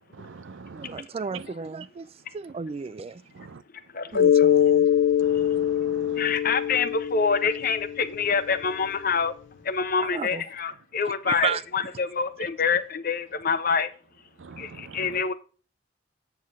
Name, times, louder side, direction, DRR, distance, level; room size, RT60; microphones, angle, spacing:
voice 1, 0.2-0.9 3.4-3.6 5.2-6.2 14.4-14.9, right 4 dB, 80° right, 0.6 m, -44 dB
voice 2, 0.7-2.1 2.3-3.2 4.1-4.9 10.0-10.4 11.3-11.6, right 6 dB, 30° right, 0.3 m, -33 dB
voice 3, 3.9-4.5 6.2-9.3 9.6-13.9 14.6-15.3, left 5 dB, 50° left, 0.9 m, -26 dB
Mallet percussion, 4.1-8.6, left 9 dB, 70° left, 0.5 m, -23 dB
8.6 x 7.4 x 3.6 m
head